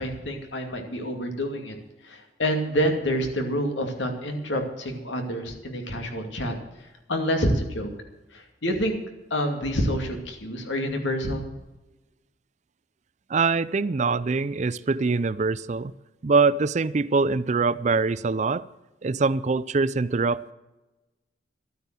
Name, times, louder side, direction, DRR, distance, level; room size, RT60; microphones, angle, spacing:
voice 1, 0.0-1.7 2.0-6.5 7.1-7.9 8.3-9.0 9.3-11.5, equal, 75° left, 4 dB, 2.4 m, -27 dB
voice 2, 13.3-15.9 16.2-18.6 19.0-20.5, right 4 dB, 40° right, 18 dB, 0.4 m, -23 dB
13.0 x 9.1 x 7.5 m, 1.0 s
head